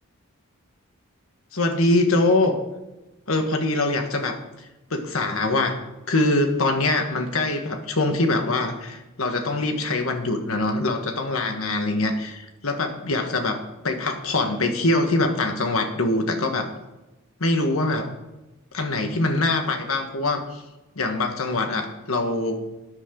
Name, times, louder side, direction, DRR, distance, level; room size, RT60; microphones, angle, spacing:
voice 1, 1.5-2.6 3.3-5.8 6.1-16.7 17.4-18.1 18.7-20.6 20.9-22.6, left 2 dB, 70° left, 5 dB, 1.5 m, -23 dB
13.0 x 9.7 x 3.9 m, 1.0 s
head